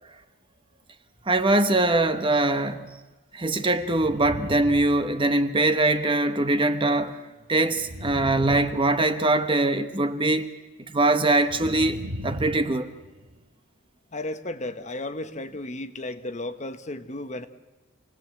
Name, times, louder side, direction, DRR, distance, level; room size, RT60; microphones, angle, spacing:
voice 1, 1.3-2.9 3.3-7.2 7.5-10.5 10.9-12.9, right 2 dB, 25° right, 1.0 m, -22 dB
sound 1, 1.9-2.2 3.8-5.7 7.8-9.5 11.4-13.4, equal, 75° right, 1.8 m, -38 dB
voice 2, 14.1-17.5, left 2 dB, 35° left, 1.0 m, -34 dB
28.5 x 19.0 x 7.6 m
head